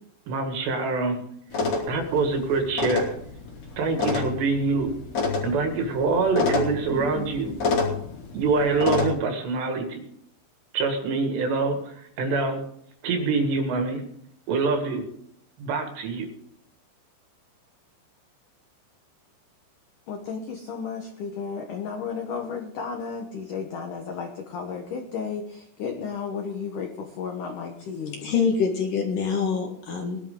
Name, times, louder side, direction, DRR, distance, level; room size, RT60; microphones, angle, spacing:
voice 1, 0.3-1.2 1.9-3.1 3.8-4.9 5.4-7.6 8.3-10.1 10.7-12.6 13.0-14.0 14.5-15.1 15.6-16.3, right 4 dB, 70° right, 5 dB, 3.7 m, -25 dB
sound 1, 1.5-9.1, left 4 dB, 40° left, 3.6 m, -29 dB
voice 2, 20.1-28.4, left 6 dB, 80° left, 4 dB, 1.8 m, -33 dB
voice 3, 28.2-30.2, left 6 dB, 60° left, 2 dB, 2.7 m, -25 dB
20.0 x 12.0 x 3.8 m, 0.69 s
omnidirectional pair, 5.5 m